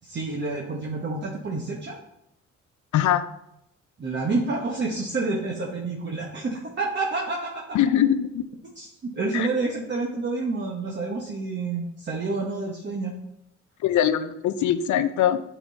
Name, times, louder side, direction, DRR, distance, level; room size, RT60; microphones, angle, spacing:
voice 1, 0.0-2.0 4.0-7.8 8.8-13.1, right 3 dB, 35° right, -1 dB, 1.1 m, -29 dB
voice 2, 2.9-3.2 7.7-8.4 9.3-9.5 13.8-15.4, left 10 dB, 70° left, 12 dB, 0.6 m, -22 dB
9.0 x 3.9 x 4.0 m, 0.82 s
cardioid pair, 90°, 30 cm